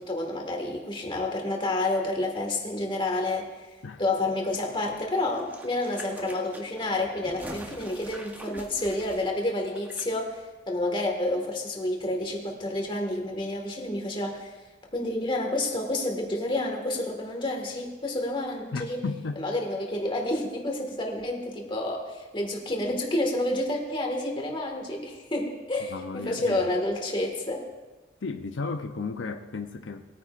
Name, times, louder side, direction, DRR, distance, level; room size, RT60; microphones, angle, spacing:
voice 1, 0.0-3.7 4.0-14.6 14.9-19.0 19.4-27.7, left 2 dB, 25° left, 1 dB, 1.9 m, -29 dB
sound 1, 5.2-10.0 10.3-10.4, equal, 10° right, 1.0 m, -44 dB
voice 2, 18.7-19.4 25.9-26.6 28.2-30.2, left 4 dB, 85° left, 6 dB, 0.6 m, -34 dB
20.5 x 9.6 x 2.5 m, 1.3 s
head